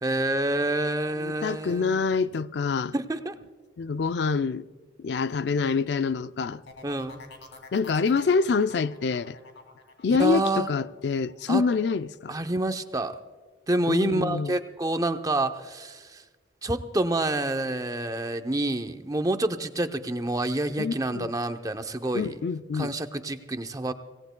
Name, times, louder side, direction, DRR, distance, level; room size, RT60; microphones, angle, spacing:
voice 1, 0.0-2.0 2.9-3.3 6.8-7.2 10.2-10.7 11.5-11.6 12.3-13.2 13.7-16.2 16.6-22.4 22.7-23.9, right 2 dB, 20° right, 0.6 m, -28 dB
voice 2, 1.2-2.9 3.8-4.7 5.0-6.6 7.7-9.4 10.0-12.4 13.9-14.5 20.8-21.3 22.1-22.9, left 5 dB, 60° left, 0.4 m, -26 dB
sound 1, 6.7-12.3 12.7-13.1, left 3 dB, 80° left, 2.7 m, -48 dB
25.5 x 17.5 x 2.2 m
head